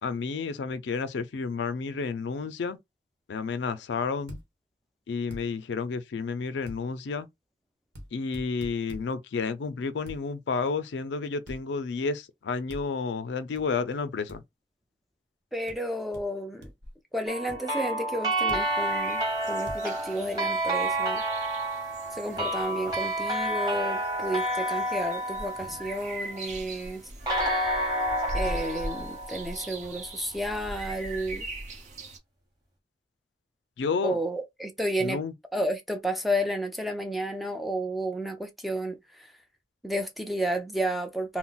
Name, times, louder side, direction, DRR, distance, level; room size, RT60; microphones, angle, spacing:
voice 1, 0.0-2.8 3.3-4.4 5.1-7.3 8.1-14.4 33.8-34.2 35.0-35.3, left 4 dB, 75° left, 0.4 m, -31 dB
sound 1, 4.3-4.4 5.3-5.4 6.7-6.8 7.9-8.1 8.3-9.1 10.1-10.2 11.5-11.6 12.7-12.9 13.5-13.6 14.3-14.4 15.7-15.8 16.1-16.2 16.6-16.9 17.5-17.6 18.5-18.7 19.7-19.8, equal, 70° right, 1.0 m, -42 dB
voice 2, 15.5-16.7 17.1-21.2 22.1-27.0 28.3-31.5 34.0-35.2 35.5-39.3 39.8-41.4, right 1 dB, ahead, 0.4 m, -31 dB
sound 2, 17.3-26.5 27.3-30.1, right 1 dB, 25° right, 1.0 m, -30 dB
sound 3, 18.6-32.2, right 1 dB, 40° right, 0.6 m, -41 dB
2.3 x 2.0 x 3.8 m
head